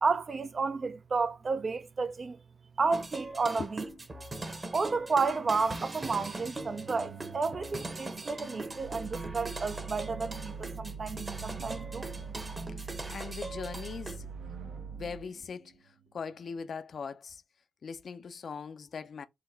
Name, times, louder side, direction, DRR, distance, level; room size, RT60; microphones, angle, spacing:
voice 1, 0.0-2.4 2.8-3.8 4.7-12.1, right 4 dB, 45° right, 0.4 m, -31 dB
sound 1, 2.9-14.2, right 2 dB, 30° right, 0.9 m, -41 dB
sound 2, 4.9-16.6, right 7 dB, 70° right, 0.8 m, -49 dB
sound 3, 8.7-15.3, right 5 dB, 75° left, 1.0 m, -43 dB
voice 2, 12.7-14.3 14.9-17.4 17.8-19.3, left 5 dB, 55° left, 0.4 m, -41 dB
3.9 x 2.1 x 3.9 m
supercardioid pair, 55°, 0 cm